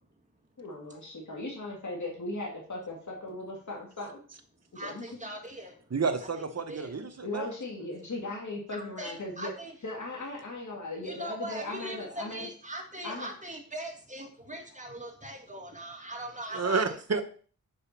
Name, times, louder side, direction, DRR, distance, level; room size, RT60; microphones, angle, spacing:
voice 1, 0.6-4.2 4.7-5.1 7.2-9.5 9.8-12.4 13.0-13.3, left 2 dB, 60° left, -2 dB, 1.9 m, -38 dB
voice 2, 4.7-5.8 6.2-6.3 6.7-7.2 8.7-9.7 11.0-17.0, right 1 dB, 25° right, 2 dB, 1.9 m, -41 dB
voice 3, 5.9-7.5 16.5-17.2, right 4 dB, 50° right, 8 dB, 1.0 m, -30 dB
5.3 x 4.9 x 5.8 m, 0.42 s
wide cardioid pair, 60°, 32 cm